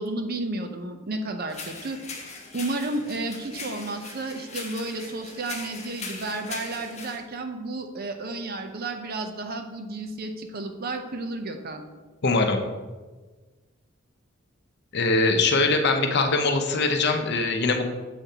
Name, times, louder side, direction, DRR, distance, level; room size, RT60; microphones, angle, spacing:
voice 1, 0.0-2.0 2.5-11.8, right 2 dB, 50° right, 6 dB, 0.7 m, -32 dB
sound 1, 1.5-7.2, left 4 dB, 35° left, 1.3 m, -40 dB
voice 2, 12.2-12.6 14.9-17.9, left 3 dB, 55° left, 5 dB, 0.7 m, -22 dB
7.6 x 6.8 x 2.9 m, 1.3 s
head